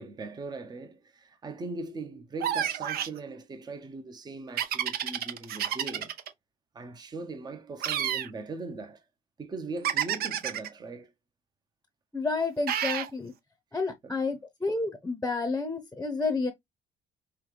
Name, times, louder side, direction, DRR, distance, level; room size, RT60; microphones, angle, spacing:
voice 1, 0.0-6.1 6.7-9.0 9.4-11.1 14.0-14.4, right 3 dB, 25° right, 0.7 m, -40 dB
sound 1, 2.4-3.2 4.6-6.3 7.8-8.3 9.8-10.7 12.7-13.1, right 10 dB, 65° right, 0.7 m, -29 dB
voice 2, 12.1-13.3 13.7-16.5, left 3 dB, 10° left, 0.8 m, -30 dB
5.5 x 2.2 x 3.2 m
cardioid pair, 110°, 17 cm